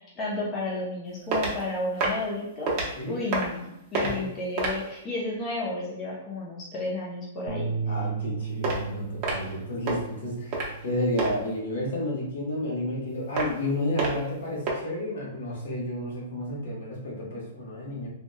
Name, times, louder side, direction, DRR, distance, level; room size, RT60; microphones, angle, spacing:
voice 1, 0.2-2.7 3.1-7.7, left 2 dB, 20° left, -5 dB, 0.6 m, -32 dB
sound 1, 1.3-1.6 2.0-2.3 2.7-2.9 3.3-3.6 3.9-4.2 4.6-4.9 8.6-8.8 9.2-9.5 9.9-10.0 10.5-10.8 11.2-11.3 13.4-13.6 14.0-14.3 14.7-14.8, right 3 dB, 30° right, 0.6 m, -27 dB
Bass guitar, 7.5-11.9 12.3-13.7, right 5 dB, 80° right, 0.3 m, -36 dB
voice 2, 7.9-18.1, left 1 dB, 75° left, -3 dB, 1.1 m, -31 dB
2.7 x 2.2 x 2.2 m, 0.84 s
hypercardioid pair, 155°, 0 cm